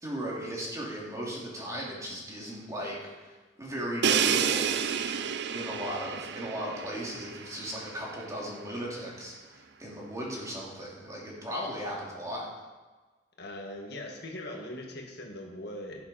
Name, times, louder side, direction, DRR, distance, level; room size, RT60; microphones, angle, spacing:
voice 1, 0.0-3.3 3.6-4.8 5.5-12.5, equal, 20° right, -4 dB, 2.8 m, -37 dB
Crash cymbal, 4.0-7.8, right 7 dB, 65° right, 0.5 m, -29 dB
voice 2, 13.4-16.0, left 1 dB, 60° left, 1 dB, 1.8 m, -40 dB
17.0 x 7.3 x 4.3 m, 1.3 s
head